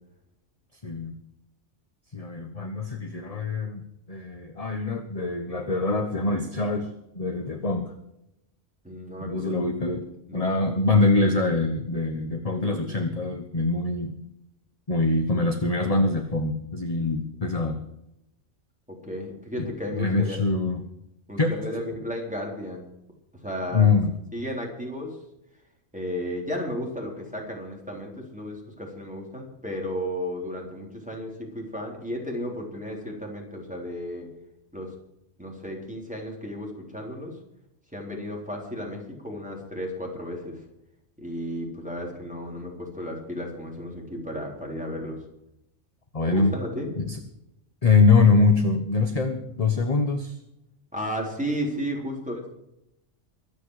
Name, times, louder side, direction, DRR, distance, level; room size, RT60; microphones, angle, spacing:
voice 1, 0.8-1.2 2.1-3.8 4.1-6.9 7.1-7.9 9.2-10.0 10.3-14.2 14.9-17.8 19.6-19.7 20.0-20.8 21.4-21.5 23.7-24.1 46.1-46.5 47.0-47.2 47.8-50.3, left 3 dB, 30° left, 6 dB, 1.2 m, -23 dB
voice 2, 8.8-9.5 9.9-10.0 10.3-10.9 18.9-20.4 21.3-22.8 23.4-23.9 24.3-25.2 25.9-34.3 34.7-34.9 35.4-37.4 37.9-40.6 41.2-45.2 46.3-46.9 50.9-52.5, equal, 5° right, -1 dB, 3.8 m, -34 dB
23.5 x 8.7 x 4.9 m, 0.84 s
omnidirectional pair, 1.3 m